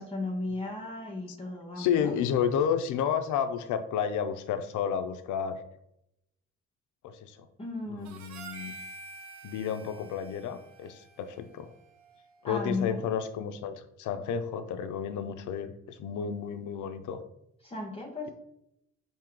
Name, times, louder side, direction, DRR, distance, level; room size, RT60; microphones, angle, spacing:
voice 1, 0.0-2.1 7.6-8.2 12.4-13.0 17.6-18.3, left 2 dB, 20° left, -2 dB, 0.6 m, -35 dB
voice 2, 1.8-5.6 7.0-7.4 7.9-8.7 9.4-11.7 12.4-17.2, left 8 dB, 75° left, 9 dB, 0.5 m, -31 dB
Harmonica, 8.0-12.5, right 3 dB, 65° right, 0.7 m, -48 dB
4.5 x 2.8 x 3.7 m, 0.79 s
cardioid pair, 90°, 30 cm